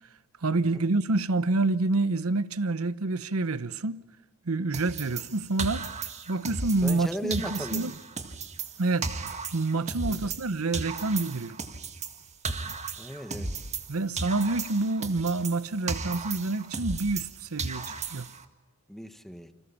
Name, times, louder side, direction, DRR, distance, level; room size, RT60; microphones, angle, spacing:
voice 1, 0.4-4.0 4.4-5.9 6.3-7.9 8.8-9.1 9.5-11.6 13.9-18.3, right 2 dB, 90° right, 0.9 m, -27 dB
sound 1, 4.7-7.0 7.3-10.5 10.7-13.9 14.2-17.3 17.6-18.4, right 4 dB, 30° right, 1.8 m, -35 dB
voice 2, 6.8-7.8 10.0-10.3 13.0-13.5 18.9-19.5, equal, ahead, 1.5 m, -37 dB
29.0 x 26.0 x 7.1 m
head